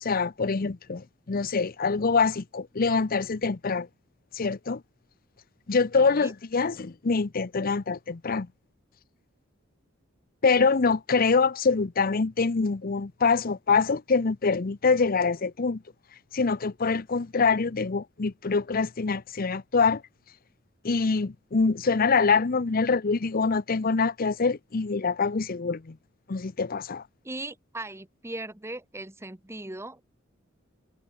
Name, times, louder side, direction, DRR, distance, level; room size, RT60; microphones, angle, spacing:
voice 1, 0.0-3.9 4.3-4.8 5.7-8.5 10.4-15.8 16.3-20.0 20.8-25.9 26.3-27.0, left 4 dB, 45° left, 0.7 m, -25 dB
voice 2, 6.0-6.3 27.2-30.0, right 2 dB, 15° right, 1.2 m, -38 dB
head